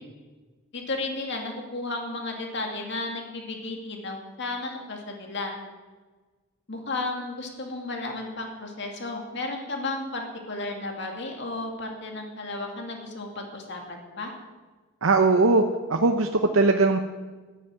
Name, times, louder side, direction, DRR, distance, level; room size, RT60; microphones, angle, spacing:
voice 1, 0.7-5.5 6.7-14.3, left 2 dB, 60° left, 2 dB, 2.3 m, -33 dB
voice 2, 15.0-15.6 15.9-17.0, right 3 dB, 85° right, 4 dB, 0.8 m, -20 dB
11.5 x 9.4 x 8.9 m, 1.3 s
head